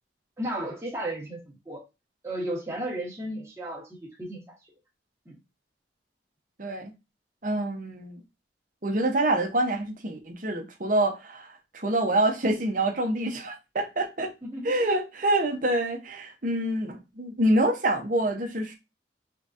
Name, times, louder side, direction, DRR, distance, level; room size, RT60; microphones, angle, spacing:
voice 1, 0.4-1.8 2.2-4.5 5.2-5.4 14.4-15.0, right 1 dB, 15° right, 1.4 m, -34 dB
voice 2, 6.6-6.9 7.4-8.2 8.8-14.3 14.6-18.7, right 1 dB, 50° right, 1.0 m, -26 dB
3.9 x 3.8 x 2.6 m
head